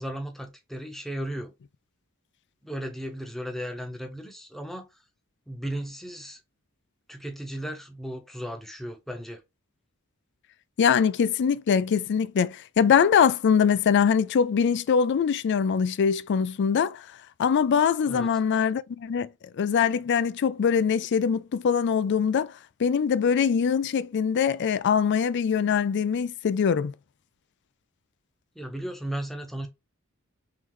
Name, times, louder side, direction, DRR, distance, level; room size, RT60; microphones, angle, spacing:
voice 1, 0.0-1.5 2.6-4.9 5.5-6.4 7.1-9.4 18.1-18.3 28.5-29.7, right 1 dB, ahead, 0.8 m, -35 dB
voice 2, 10.8-17.0 17.4-19.3 19.6-22.5 22.8-26.9, left 7 dB, 55° left, 0.4 m, -23 dB
3.8 x 3.2 x 3.0 m
head